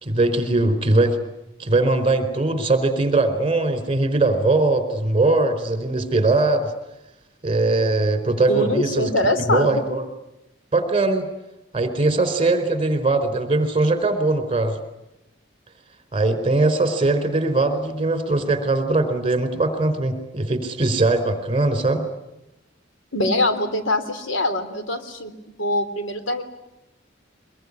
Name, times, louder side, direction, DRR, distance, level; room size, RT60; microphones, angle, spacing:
voice 1, 0.0-1.2 1.6-6.7 7.4-9.1 9.5-10.0 10.7-11.3 11.7-14.8 16.1-22.0, right 2 dB, 30° right, 10 dB, 4.2 m, -20 dB
voice 2, 8.5-9.7 23.1-26.4, left 1 dB, 80° left, 9 dB, 3.4 m, -23 dB
24.0 x 22.5 x 9.8 m, 0.92 s
head